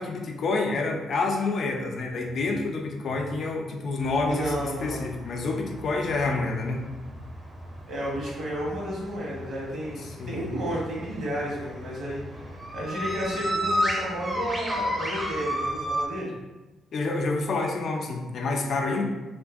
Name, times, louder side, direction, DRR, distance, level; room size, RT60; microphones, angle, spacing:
voice 1, 0.0-6.8 10.0-10.5 16.9-19.0, left 3 dB, 60° left, 2 dB, 0.4 m, -28 dB
sound 1, 4.0-16.0, equal, 15° right, 0.5 m, -33 dB
voice 2, 4.3-5.0 7.9-16.3, equal, 70° right, -5 dB, 1.1 m, -32 dB
2.6 x 2.5 x 2.4 m, 1.1 s
cardioid pair, 90°, 0 cm